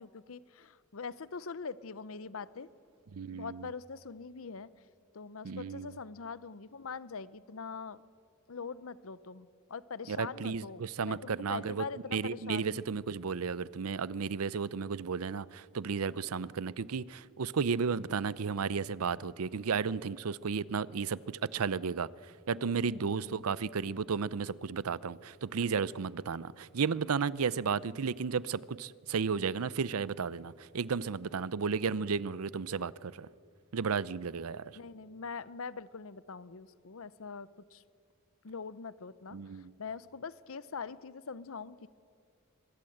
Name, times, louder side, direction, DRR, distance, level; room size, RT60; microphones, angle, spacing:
voice 1, 0.0-2.7 3.3-4.7 5.1-8.0 8.5-12.8 22.5-23.4 34.8-37.8 38.4-41.9, left 5 dB, 65° left, 0.7 m, -43 dB
voice 2, 3.1-3.7 5.4-6.0 10.1-11.9 12.1-33.3 33.7-34.7 39.3-39.7, right 5 dB, 85° right, 0.6 m, -33 dB
23.5 x 22.0 x 7.9 m
head